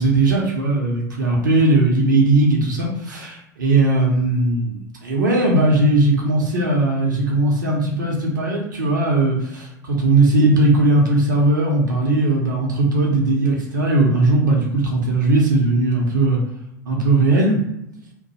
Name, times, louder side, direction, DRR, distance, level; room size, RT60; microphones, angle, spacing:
voice 1, 0.0-16.4 16.8-17.6, right 2 dB, 75° right, -1 dB, 0.7 m, -18 dB
2.4 x 2.2 x 2.8 m, 0.83 s
figure-of-eight pair, 75°, 10 cm